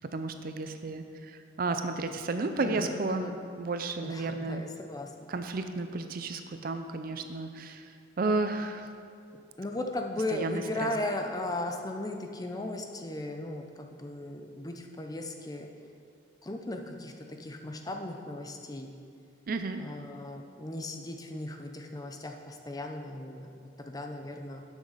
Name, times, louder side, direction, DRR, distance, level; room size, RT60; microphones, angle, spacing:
voice 1, 0.1-3.2 3.6-4.6 5.3-7.8 8.2-8.8 10.3-10.9 19.5-19.8, right 3 dB, 45° right, 8 dB, 0.5 m, -32 dB
voice 2, 2.6-3.4 4.0-5.1 9.6-15.7 16.4-18.9 19.8-24.6, left 1 dB, 20° left, 4 dB, 0.5 m, -37 dB
8.1 x 6.4 x 5.5 m, 2.3 s
head